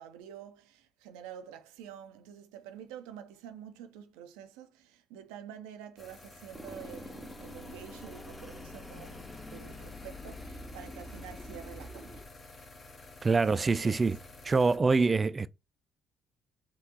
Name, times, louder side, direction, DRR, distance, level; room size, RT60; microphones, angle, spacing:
voice 1, 0.0-12.8 13.4-14.0, right 9 dB, 90° right, 0.5 m, -48 dB
sound 1, 6.0-14.8, left 3 dB, 35° left, 0.8 m, -52 dB
sound 2, 6.5-12.3, left 1 dB, 5° left, 0.7 m, -46 dB
voice 2, 13.2-14.2 14.4-15.5, right 4 dB, 30° right, 0.3 m, -25 dB
3.7 x 2.4 x 2.8 m
supercardioid pair, 65°, 0 cm